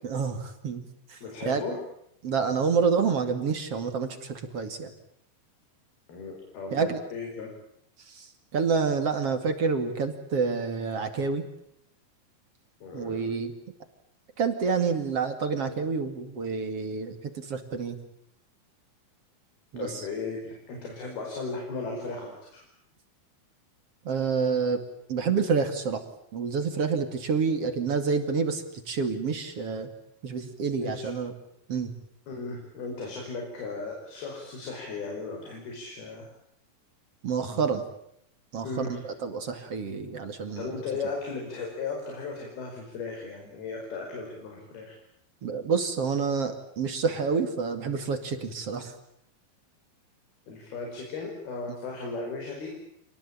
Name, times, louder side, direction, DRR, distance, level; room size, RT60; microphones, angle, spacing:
voice 1, 0.0-1.2 1.5-1.6 2.2-4.9 6.7-7.0 8.1-11.4 12.9-13.5 14.4-18.0 19.7-20.1 24.0-24.8 25.1-26.0 26.3-29.9 30.2-31.3 31.7-31.9 37.2-37.8 38.5-40.8 45.4-48.9, right 5 dB, 45° right, 7 dB, 3.0 m, -28 dB
voice 2, 1.2-1.8 6.1-7.5 12.8-13.2 19.8-22.6 30.8-31.1 32.3-36.3 38.6-39.0 40.6-45.0 50.5-52.7, left 4 dB, 80° left, 1 dB, 6.9 m, -36 dB
28.0 x 20.0 x 8.7 m, 0.76 s
omnidirectional pair, 4.3 m